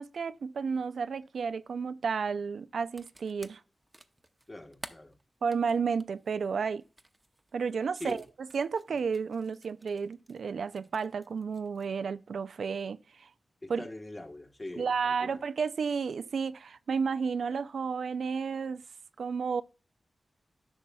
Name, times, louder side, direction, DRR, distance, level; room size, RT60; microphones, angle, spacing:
voice 1, 0.0-3.6 5.4-6.8 7.5-8.2 8.5-13.3 13.7-13.8 14.8-18.8 19.2-19.6, right 5 dB, 80° right, 0.3 m, -32 dB
sound 1, 2.8-10.4 10.7-11.9, right 1 dB, 20° right, 0.7 m, -52 dB
voice 2, 4.5-5.2 7.9-8.2 13.6-15.4, left 1 dB, 25° left, 1.2 m, -43 dB
10.5 x 6.0 x 2.3 m
cardioid pair, 65°, 0 cm